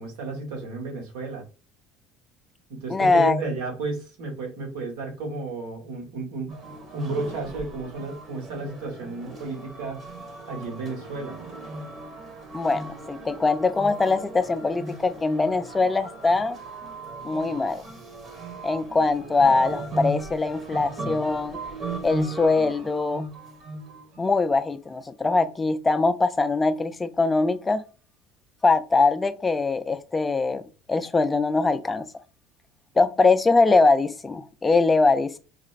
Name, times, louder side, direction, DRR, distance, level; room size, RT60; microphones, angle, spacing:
voice 1, 0.0-1.4 2.7-6.5 6.9-10.0 10.5-11.4, right 3 dB, 85° right, 1.4 m, -32 dB
voice 2, 2.9-3.4 12.5-16.6 17.2-17.8 18.6-21.6 22.0-23.3 24.2-27.8 28.6-30.6 30.9-32.1 33.0-35.4, left 3 dB, 15° left, 0.5 m, -22 dB
sound 1, 6.5-24.3, right 2 dB, 35° right, 1.2 m, -37 dB
4.8 x 2.2 x 2.4 m
cardioid pair, 125°, 0 cm